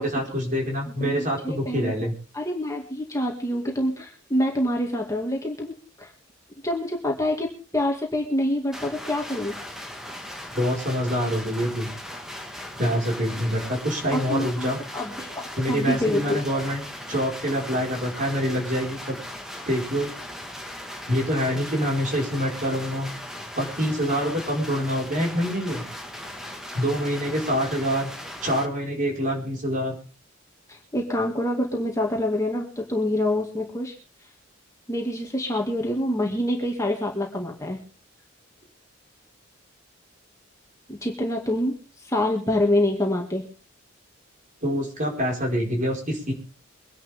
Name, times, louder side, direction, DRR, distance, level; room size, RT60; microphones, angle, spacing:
voice 1, 0.0-2.1 10.5-11.9 12.8-14.8 15.6-19.2 19.7-20.1 21.1-23.1 23.6-25.8 26.7-28.1 28.4-29.9 44.6-46.3, equal, 40° right, 0 dB, 5.0 m, -26 dB
voice 2, 1.0-1.9 2.3-5.7 6.0-6.1 6.6-9.6 14.1-14.7 14.9-16.4 30.7-33.9 34.9-37.8 40.9-43.4, left 1 dB, 15° left, 0 dB, 2.2 m, -26 dB
sound 1, 8.7-28.7, left 1 dB, ahead, 1.8 m, -38 dB
24.0 x 10.5 x 3.6 m, 0.37 s
head